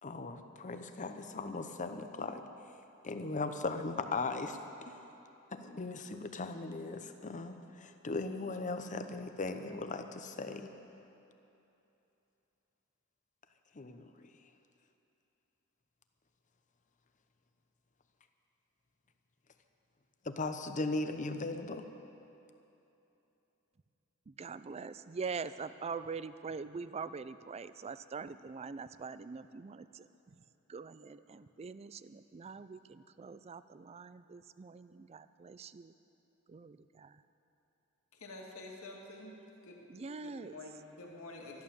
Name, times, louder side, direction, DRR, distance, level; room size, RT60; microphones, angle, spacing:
voice 1, 0.0-2.4 3.0-4.6 4.9-5.0 5.5-10.7 13.7-14.1 20.2-21.9, left 3 dB, 35° left, 8 dB, 0.8 m, -38 dB
voice 2, 24.4-30.1 30.7-35.9 36.5-37.1 39.9-40.5, right 5 dB, 30° right, 14 dB, 0.4 m, -43 dB
voice 3, 38.1-39.4 39.6-39.8 40.2-41.6, left 2 dB, 90° left, -1 dB, 2.2 m, -48 dB
13.0 x 11.5 x 7.1 m, 3.0 s
head